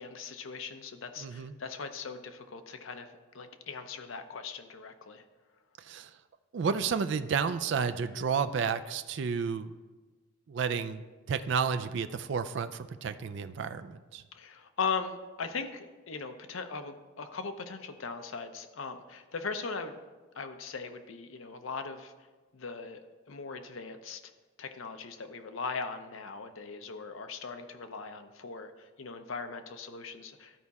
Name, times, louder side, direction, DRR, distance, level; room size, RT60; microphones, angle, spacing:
voice 1, 0.0-3.1 3.3-5.2 14.3-20.0 20.4-22.1 22.5-23.0 23.3-24.3 24.6-30.5, left 5 dB, 70° left, 7 dB, 0.7 m, -39 dB
voice 2, 1.2-1.5 5.8-6.1 6.5-9.7 10.5-14.2, right 6 dB, 55° right, 10 dB, 0.3 m, -31 dB
13.0 x 4.7 x 4.1 m, 1.3 s
head